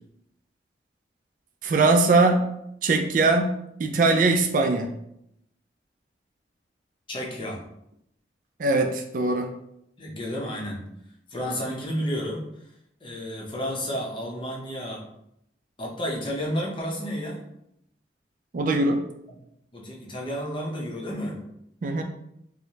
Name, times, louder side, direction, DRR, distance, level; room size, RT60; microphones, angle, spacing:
voice 1, 1.6-2.5 2.8-3.5 3.8-4.9 8.6-9.5 18.5-19.0 21.8-22.0, right 3 dB, 50° right, 4 dB, 0.3 m, -21 dB
voice 2, 7.1-7.6 10.0-10.9 11.3-12.5 13.0-15.0 15.8-17.4 19.7-21.4, equal, 30° left, -2 dB, 0.7 m, -31 dB
4.6 x 2.1 x 2.7 m, 0.77 s
head